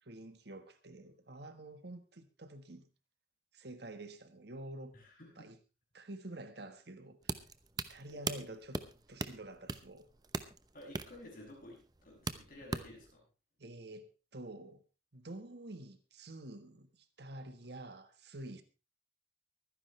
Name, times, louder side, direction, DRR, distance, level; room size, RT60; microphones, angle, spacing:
voice 1, 0.0-2.9 3.5-4.9 5.4-5.6 5.9-7.4 7.8-8.8 9.1-10.1 13.6-14.8 15.1-18.6, right 1 dB, 55° right, 1.4 m, -48 dB
voice 2, 4.9-5.5 8.1-8.5 10.7-13.3, left 1 dB, 45° left, 7.3 m, -53 dB
sound 1, 7.2-13.1, right 3 dB, 20° right, 0.8 m, -41 dB
24.0 x 10.0 x 3.3 m
head